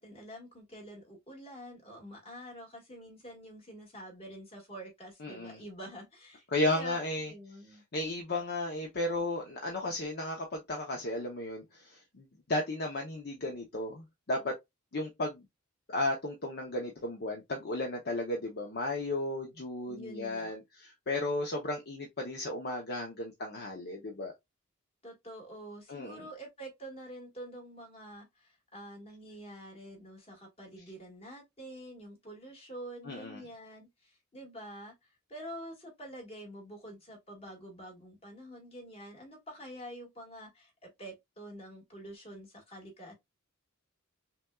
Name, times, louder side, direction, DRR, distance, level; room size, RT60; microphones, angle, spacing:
voice 1, 0.0-7.8 19.9-20.6 25.0-43.1, equal, 30° left, 1.7 m, -47 dB
voice 2, 5.2-5.6 6.5-7.3 7.9-14.6 14.9-15.5 15.9-24.3 25.9-26.3 33.0-33.4, left 2 dB, 50° left, 0.8 m, -34 dB
5.8 x 2.3 x 2.3 m
head